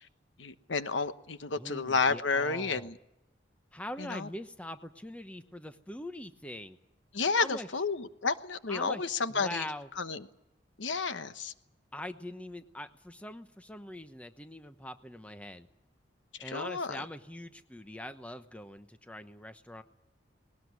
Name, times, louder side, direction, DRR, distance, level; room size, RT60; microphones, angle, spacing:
voice 1, 0.4-3.0 4.0-4.3 7.1-9.7 10.0-10.3 10.8-11.5 16.4-17.0, left 4 dB, 90° left, 11 dB, 1.1 m, -31 dB
voice 2, 1.5-2.9 3.7-6.8 7.4-7.7 8.7-9.0 9.3-9.9 11.9-15.7 16.4-19.8, left 1 dB, 5° left, 9 dB, 0.9 m, -43 dB
20.0 x 18.5 x 9.6 m, 0.91 s
head